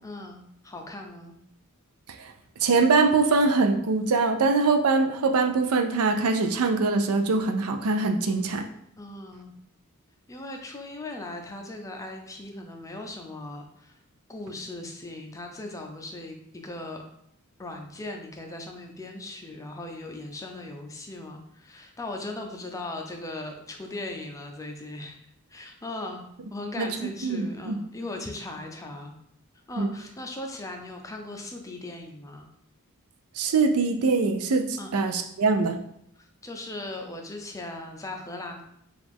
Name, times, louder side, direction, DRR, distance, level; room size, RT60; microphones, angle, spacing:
voice 1, 0.0-1.4 9.0-9.5 10.3-14.0 14.3-17.0 17.6-25.2 25.5-29.1 29.7-32.4 34.8-35.0 36.2-38.6, left 2 dB, 15° left, 3 dB, 0.5 m, -38 dB
voice 2, 2.6-8.6 26.8-26.9 27.2-27.7 29.8-29.9 33.4-35.8, right 4 dB, 80° right, 6 dB, 0.5 m, -23 dB
5.1 x 2.4 x 3.4 m, 0.72 s
head